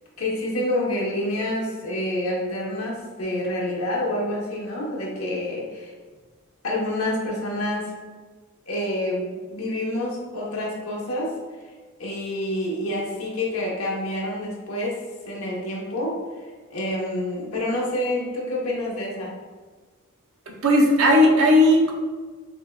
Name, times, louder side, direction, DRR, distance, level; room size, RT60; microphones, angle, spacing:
voice 1, 0.2-5.9 6.6-7.9 8.7-11.3 12.0-15.0 15.3-16.2 16.7-19.3, left 1 dB, 85° left, -3 dB, 1.0 m, -27 dB
voice 2, 20.5-21.9, left 1 dB, 75° right, 0 dB, 0.7 m, -16 dB
5.7 x 2.2 x 2.3 m, 1.4 s
head